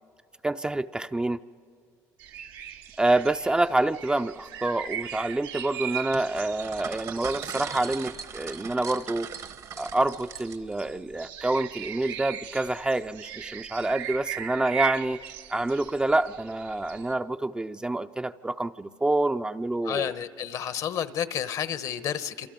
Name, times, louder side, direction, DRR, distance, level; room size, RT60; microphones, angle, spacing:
voice 1, 0.4-1.4 3.0-9.3 9.8-15.2 15.5-20.1, right 2 dB, 15° right, 9 dB, 0.5 m, -27 dB
sound 1, 2.2-17.1, right 10 dB, 85° right, 1.1 m, -39 dB
sound 2, 6.1-10.8, right 7 dB, 55° right, 1.2 m, -39 dB
voice 2, 19.8-22.5, left 9 dB, 60° left, 13 dB, 1.1 m, -30 dB
27.5 x 26.5 x 5.2 m, 2.2 s
cardioid pair, 95°, 7 cm